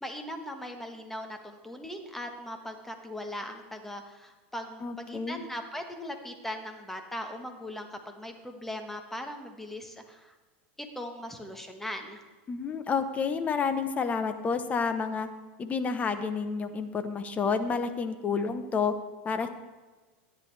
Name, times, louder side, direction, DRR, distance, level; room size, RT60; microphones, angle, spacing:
voice 1, 0.0-10.3 10.9-12.2, left 1 dB, 5° left, 5 dB, 1.3 m, -39 dB
voice 2, 4.8-5.4 12.5-15.3 15.6-18.9 19.2-19.5, left 5 dB, 25° left, 10 dB, 0.9 m, -29 dB
14.0 x 9.9 x 3.4 m, 1.3 s
supercardioid pair, 125°, 6 cm